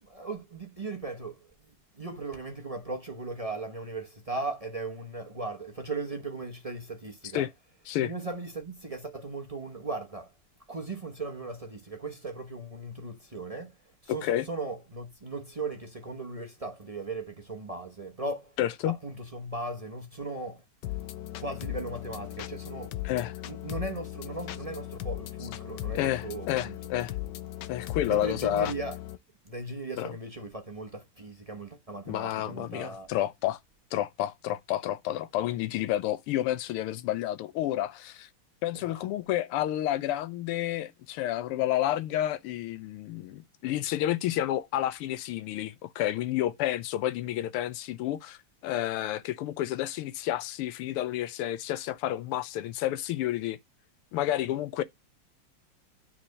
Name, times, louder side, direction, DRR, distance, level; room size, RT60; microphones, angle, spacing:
voice 1, 0.0-7.5 8.0-10.3 10.7-13.7 14.0-18.5 18.8-20.6 21.4-22.9 23.5-26.8 28.0-29.0 29.4-33.1 38.7-39.1, right 3 dB, 35° right, 0.5 m, -38 dB
voice 2, 14.1-14.5 18.6-18.9 23.0-23.3 25.9-27.1 27.7-28.7 30.0-30.1 32.1-33.6 33.9-38.3 38.6-48.4 48.6-53.6 54.1-54.8, left 13 dB, 85° left, 1.6 m, -30 dB
sound 1, 20.8-29.2, left 14 dB, 70° left, 1.1 m, -38 dB
9.3 x 4.3 x 5.4 m
omnidirectional pair, 2.4 m